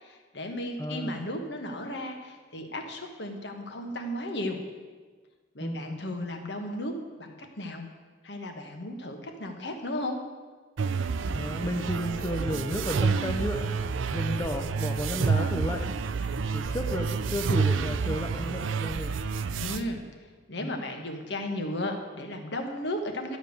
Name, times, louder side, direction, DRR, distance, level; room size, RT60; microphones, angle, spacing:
voice 1, 0.0-4.6 5.5-7.9 8.2-10.2 19.5-20.0 20.5-23.4, left 1 dB, 60° left, 4 dB, 1.3 m, -35 dB
voice 2, 0.8-1.2 5.6-6.0 11.3-13.8 14.1-15.8 16.5-19.1 20.6-20.7, equal, 15° left, 2 dB, 0.6 m, -32 dB
sound 1, 10.8-19.8, right 5 dB, 85° right, 0.5 m, -29 dB
12.0 x 5.3 x 8.0 m, 1.4 s
head